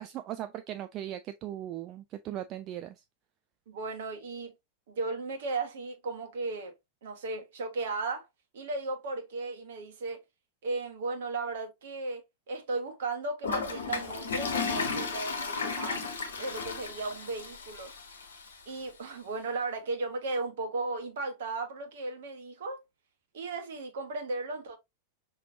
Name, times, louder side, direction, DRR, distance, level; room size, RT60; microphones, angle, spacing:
voice 1, 0.0-3.0, right 12 dB, 35° right, 0.4 m, -38 dB
voice 2, 3.7-4.5 4.9-6.7 7.0-8.3 8.5-10.2 10.6-16.0 16.4-17.9 18.7-22.8 23.3-24.8, right 3 dB, 60° right, 1.3 m, -35 dB
Toilet flush, 13.4-18.5, left 5 dB, 65° left, 1.0 m, -34 dB
5.8 x 3.1 x 2.7 m
figure-of-eight pair, 90°, 0 cm